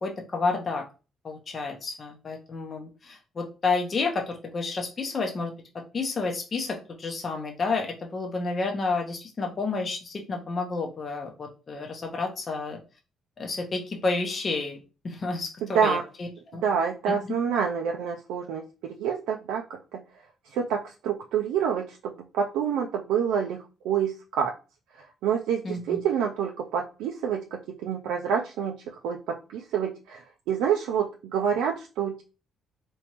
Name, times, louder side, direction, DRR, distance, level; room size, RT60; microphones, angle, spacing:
voice 1, 0.0-0.8 1.2-5.5 5.9-12.8 13.4-14.8 15.0-16.6 17.1-17.3 25.6-26.0, left 3 dB, 45° left, 2 dB, 0.7 m, -30 dB
voice 2, 16.6-18.6 18.9-19.6 19.9-20.0 20.5-23.6 23.8-24.5 25.2-28.7 29.0-32.2, right 7 dB, 90° right, 1 dB, 0.4 m, -27 dB
3.5 x 3.0 x 2.9 m, 0.32 s
supercardioid pair, 70°, 0 cm